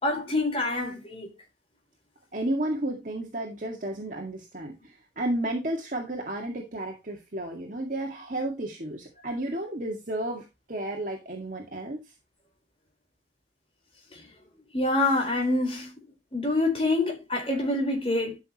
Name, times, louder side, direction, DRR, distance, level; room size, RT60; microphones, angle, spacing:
voice 1, 0.0-1.3 14.1-14.3 14.7-15.9 16.3-18.4, left 2 dB, 30° left, 4.4 m, -26 dB
voice 2, 2.3-12.1, right 1 dB, 45° right, 2.0 m, -32 dB
13.0 x 6.2 x 3.0 m
head